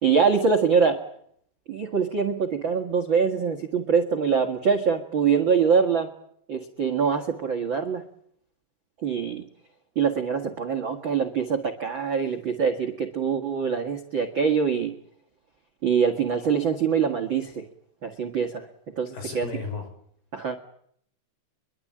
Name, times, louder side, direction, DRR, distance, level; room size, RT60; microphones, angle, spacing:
voice 1, 0.0-1.0 1.7-6.1 6.5-8.0 9.0-9.4 9.9-14.9 15.8-17.6 18.0-18.7 19.0-19.5 20.3-20.6, right 6 dB, 60° right, 3 dB, 1.2 m, -24 dB
voice 2, 19.1-19.9, left 4 dB, 55° left, 6 dB, 7.5 m, -34 dB
24.0 x 23.0 x 8.8 m, 0.68 s
omnidirectional pair, 5.4 m